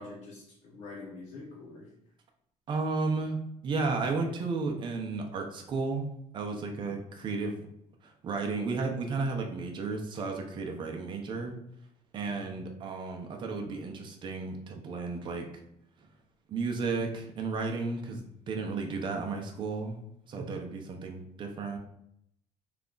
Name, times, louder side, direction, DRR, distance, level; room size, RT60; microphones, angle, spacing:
voice 1, 0.0-2.1 6.8-6.9 12.3-12.6, left 3 dB, 65° left, -5 dB, 0.8 m, -46 dB
voice 2, 2.7-3.4 3.6-6.1 6.3-7.7 8.0-11.5 12.1-15.5 16.5-20.0 20.3-21.8, right 4 dB, 40° right, 2 dB, 0.6 m, -33 dB
3.3 x 2.4 x 3.8 m, 0.74 s
cardioid pair, 140°, 12 cm